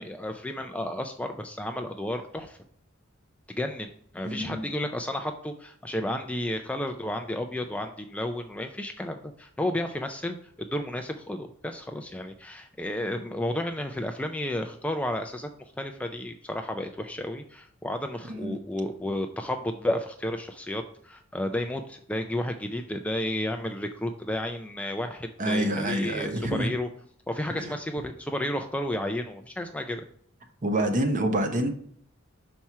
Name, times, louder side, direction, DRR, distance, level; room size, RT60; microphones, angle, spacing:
voice 1, 0.0-2.6 3.5-26.9 27.3-30.0, left 1 dB, 5° left, 5 dB, 0.3 m, -32 dB
voice 2, 4.2-4.7 18.3-18.6 25.4-26.7 27.6-27.7 30.6-31.7, right 1 dB, 40° right, 5 dB, 0.9 m, -27 dB
5.9 x 4.3 x 4.5 m, 0.64 s
head